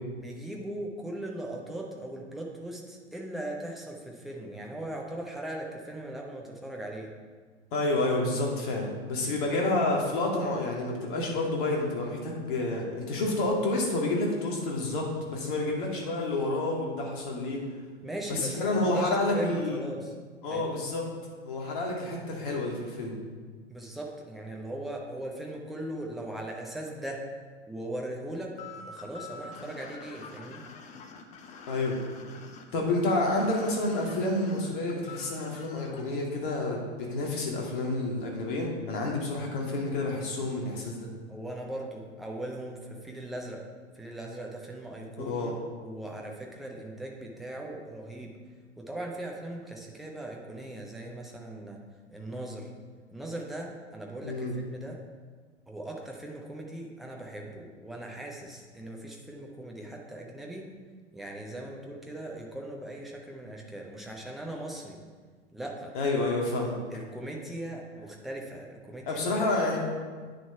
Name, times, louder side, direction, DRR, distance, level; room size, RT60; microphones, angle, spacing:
voice 1, 0.2-7.1 18.0-20.1 20.5-20.8 23.7-27.2 27.7-30.7 41.3-43.6 43.9-45.6 45.8-48.4 48.8-51.8 52.1-52.7 53.1-55.0 55.7-60.7 61.1-65.0 65.5-65.9 66.9-69.4, right 1 dB, ahead, -1 dB, 0.3 m, -39 dB
voice 2, 7.7-17.6 18.3-19.8 20.4-21.1 21.4-23.1 31.7-32.0 32.7-41.1 45.3-45.5 54.2-54.5 65.9-66.8 69.1-69.8, left 2 dB, 45° left, -1 dB, 2.3 m, -29 dB
sound 1, 28.6-36.0, left 5 dB, 20° left, 0.7 m, -47 dB
9.3 x 6.5 x 4.5 m, 1.5 s
figure-of-eight pair, 100°, 35 cm